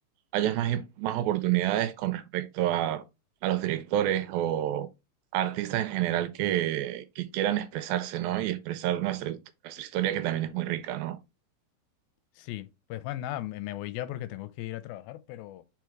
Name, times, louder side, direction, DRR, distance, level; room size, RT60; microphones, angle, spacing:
voice 1, 0.3-3.0 3.4-4.9 5.3-9.4 9.6-11.2, right 12 dB, 80° right, 2.3 m, -28 dB
voice 2, 12.3-15.6, left 14 dB, 80° left, 2.3 m, -37 dB
4.8 x 4.6 x 4.5 m
omnidirectional pair, 4.4 m